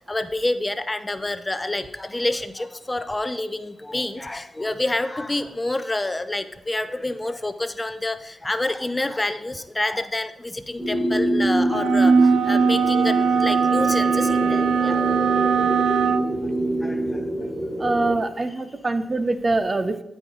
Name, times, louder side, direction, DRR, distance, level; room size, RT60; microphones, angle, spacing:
voice 1, 0.1-15.1 15.7-15.8 16.8-17.3 18.5-18.6, left 2 dB, 20° left, 10 dB, 0.6 m, -28 dB
sound 1, 10.8-18.2, right 1 dB, 5° right, 2.9 m, -24 dB
sound 2, 11.7-16.3, right 6 dB, 85° right, 0.4 m, -20 dB
voice 2, 17.8-20.0, right 2 dB, 35° right, 11 dB, 0.6 m, -24 dB
13.0 x 5.0 x 3.8 m, 0.85 s
cardioid pair, 65°, 0 cm